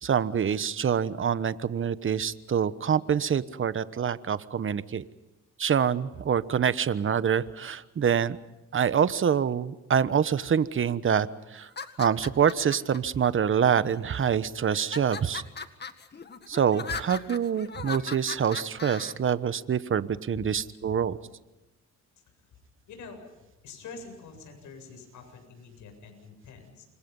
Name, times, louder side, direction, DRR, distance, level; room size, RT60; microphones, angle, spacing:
voice 1, 0.0-5.0 5.6-8.4 8.7-11.7 12.0-15.4 16.5-21.2, right 8 dB, 40° right, 14 dB, 1.2 m, -26 dB
sound 1, 11.6-13.0 13.7-14.3 14.7-19.1, left 5 dB, 35° left, 2.0 m, -38 dB
voice 2, 22.9-23.2 23.6-26.8, left 4 dB, 80° left, 5 dB, 7.8 m, -46 dB
29.0 x 25.5 x 5.6 m, 1.0 s
cardioid pair, 90°, 30 cm